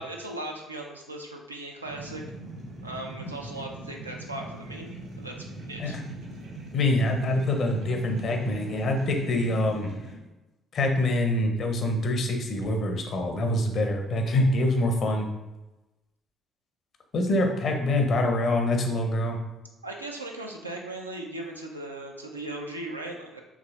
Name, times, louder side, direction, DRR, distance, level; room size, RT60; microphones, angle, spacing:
voice 1, 0.0-2.2 2.8-6.0 19.8-23.4, right 1 dB, 85° right, 0 dB, 0.4 m, -38 dB
sound 1, 1.8-10.2, right 2 dB, 60° right, 1.1 m, -41 dB
voice 2, 6.7-9.9 10.7-15.3 17.1-19.4, left 1 dB, 45° left, 3 dB, 0.7 m, -25 dB
4.6 x 3.0 x 2.4 m, 1.0 s
figure-of-eight pair, 50°, 0 cm